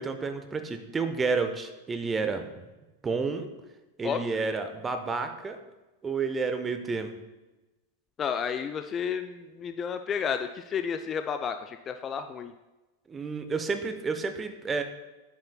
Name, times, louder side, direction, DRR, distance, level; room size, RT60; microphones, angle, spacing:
voice 1, 0.0-2.6 3.0-3.5 4.0-5.6 6.0-7.1 13.1-14.8, right 4 dB, 15° right, 7 dB, 0.7 m, -30 dB
voice 2, 8.2-12.5, left 7 dB, 25° left, 9 dB, 0.3 m, -31 dB
9.6 x 8.2 x 2.2 m, 1.1 s
figure-of-eight pair, 90°, 0 cm